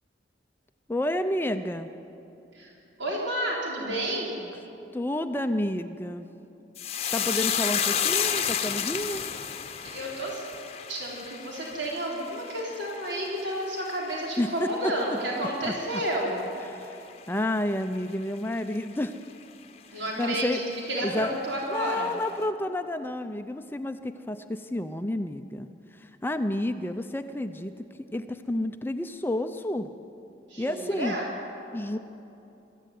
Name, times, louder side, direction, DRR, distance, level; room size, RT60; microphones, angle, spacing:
voice 1, 0.9-1.9 4.9-6.3 7.1-9.2 14.4-14.7 15.4-16.0 16.6-19.1 19.9-20.6 21.0-21.3 21.7-27.7 28.1-29.9 30.6-31.2 31.7-32.0, left 1 dB, 10° left, 8 dB, 0.5 m, -30 dB
voice 2, 3.0-4.4 9.8-10.5 10.9-16.4 19.9-22.1 30.5-31.3, right 1 dB, 75° right, -3 dB, 4.3 m, -31 dB
sound 1, 6.8-15.4 15.7-16.3 16.6-16.8, left 8 dB, 35° left, 0.9 m, -31 dB
22.5 x 14.0 x 9.3 m, 2.9 s
head